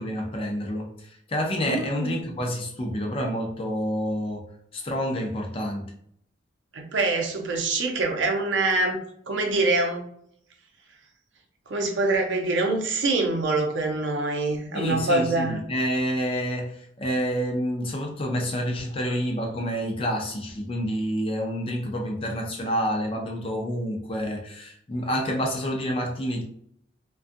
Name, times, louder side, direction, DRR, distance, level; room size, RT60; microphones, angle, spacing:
voice 1, 0.0-4.4 4.7-5.9 14.7-26.4, equal, 30° left, 1 dB, 0.5 m, -28 dB
voice 2, 1.7-2.2 6.7-9.0 9.3-10.1 11.7-15.6, right 2 dB, 80° right, 3 dB, 0.6 m, -25 dB
2.5 x 2.2 x 2.5 m, 0.69 s
head